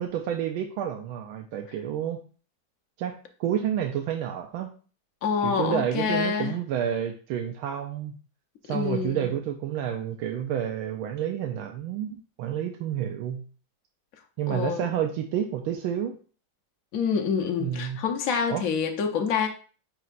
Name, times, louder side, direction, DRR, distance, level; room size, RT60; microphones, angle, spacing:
voice 1, 0.0-2.2 3.0-4.7 5.4-8.1 8.6-13.4 14.4-16.2 17.6-18.0 18.5-18.6, right 9 dB, 85° right, 4 dB, 1.4 m, -29 dB
voice 2, 5.2-6.5 8.7-9.3 14.5-14.9 16.9-19.5, left 6 dB, 60° left, 4 dB, 0.9 m, -27 dB
9.2 x 4.5 x 2.4 m, 0.40 s
omnidirectional pair, 2.3 m